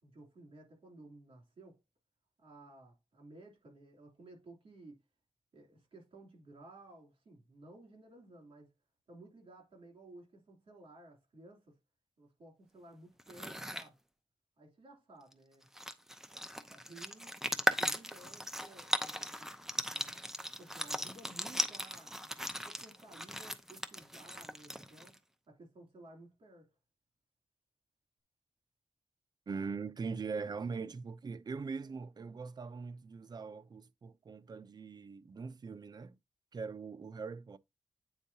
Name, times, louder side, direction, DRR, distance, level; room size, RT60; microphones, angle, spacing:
voice 1, 0.0-1.8 2.4-5.0 5.5-8.7 9.1-11.7 12.2-14.0 14.6-15.7 16.7-17.4 17.8-20.1 20.6-22.4 22.6-25.2 25.5-26.7 30.3-30.4 30.9-31.0 31.8-32.0, right 2 dB, 75° right, 2.9 m, -56 dB
sound 1, 13.2-13.9 15.3-15.4 15.6-25.2, equal, 5° right, 0.6 m, -38 dB
voice 2, 29.5-36.2 36.5-37.6, right 5 dB, 45° right, 0.5 m, -41 dB
8.8 x 4.5 x 2.7 m
wide cardioid pair, 105°, 9 cm